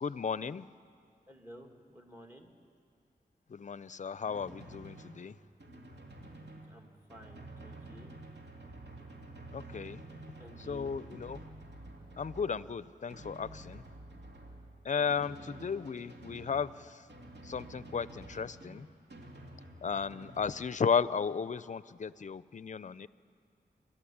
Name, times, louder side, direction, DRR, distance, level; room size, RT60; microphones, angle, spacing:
voice 1, 0.0-0.7 3.5-5.4 9.5-10.0 10.7-11.4 12.2-13.9 14.8-17.1 17.4-18.9 19.8-23.1, left 6 dB, 45° left, 17 dB, 0.5 m, -34 dB
voice 2, 1.3-2.5 6.7-8.1 10.4-11.0 14.9-15.3, equal, 15° right, 3 dB, 2.4 m, -53 dB
Drum, 4.2-20.6, right 2 dB, 85° right, 2.5 m, -50 dB
28.5 x 11.5 x 8.7 m, 2.2 s
wide cardioid pair, 70°, 17 cm